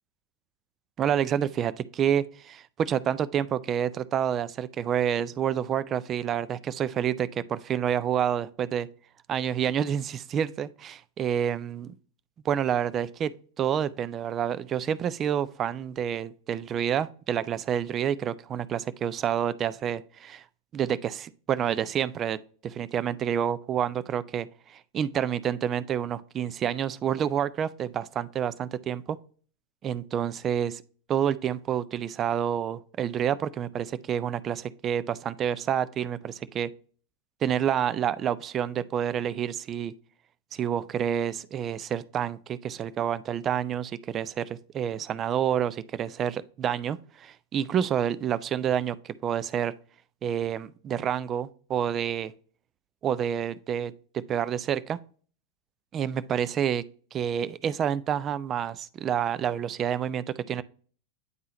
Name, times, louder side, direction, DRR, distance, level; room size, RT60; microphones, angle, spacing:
voice 1, 1.0-8.9 9.3-11.9 12.4-13.3 13.6-20.4 20.7-22.4 22.6-29.2 29.8-30.8 31.1-36.7 37.4-39.9 40.5-49.7 50.2-52.3 53.0-55.0 55.9-56.8 57.1-60.6, right 9 dB, 30° right, 0.3 m, -28 dB
9.4 x 3.6 x 2.8 m
figure-of-eight pair, 90°, 0 cm